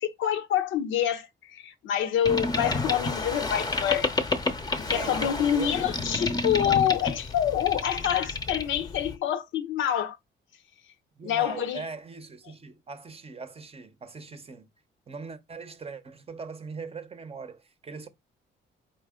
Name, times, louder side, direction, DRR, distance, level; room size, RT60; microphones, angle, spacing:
voice 1, 0.0-4.1 4.8-10.2 11.2-11.8, left 10 dB, 80° left, 0.6 m, -27 dB
Boat Water vehicle, 2.2-9.2, left 3 dB, 20° left, 0.6 m, -30 dB
voice 2, 4.9-6.0 11.2-14.7 15.1-18.1, right 4 dB, 30° right, 0.7 m, -40 dB
4.5 x 2.7 x 3.6 m
cardioid pair, 90°, 20 cm